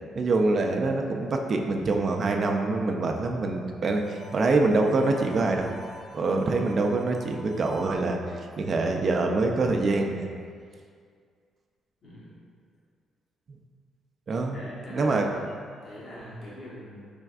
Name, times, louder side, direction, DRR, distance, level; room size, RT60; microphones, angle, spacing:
voice 1, 0.2-5.7 6.1-8.2 8.6-10.3 14.3-14.6 14.9-15.3 16.3-16.4, right 3 dB, 45° right, 2 dB, 0.4 m, -25 dB
Harmonica, 3.9-8.0, right 1 dB, 70° left, 0.7 m, -49 dB
voice 2, 12.0-12.4 14.5-17.1, equal, 50° left, -8 dB, 1.1 m, -44 dB
4.4 x 3.3 x 2.4 m, 2.1 s
cardioid pair, 90°, 0 cm